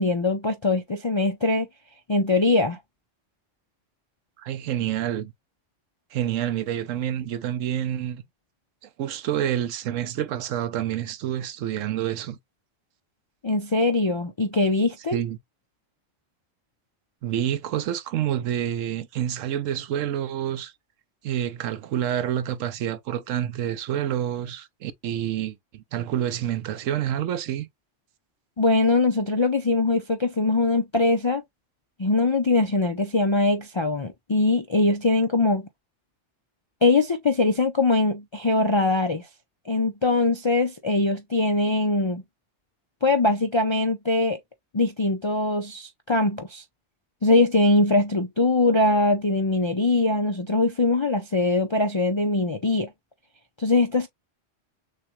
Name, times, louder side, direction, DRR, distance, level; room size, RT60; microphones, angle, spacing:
voice 1, 0.0-1.7 2.1-2.8 13.4-15.2 28.6-31.4 32.0-35.7 36.8-39.3 39.7-42.2 43.0-44.4 44.7-46.6 47.2-52.9 53.6-54.1, left 2 dB, 50° left, 0.3 m, -22 dB
voice 2, 4.4-5.3 6.1-8.2 9.0-12.4 15.1-15.4 17.2-20.7 21.2-27.7, right 11 dB, 85° right, 1.0 m, -28 dB
6.4 x 2.3 x 3.0 m
omnidirectional pair, 1.3 m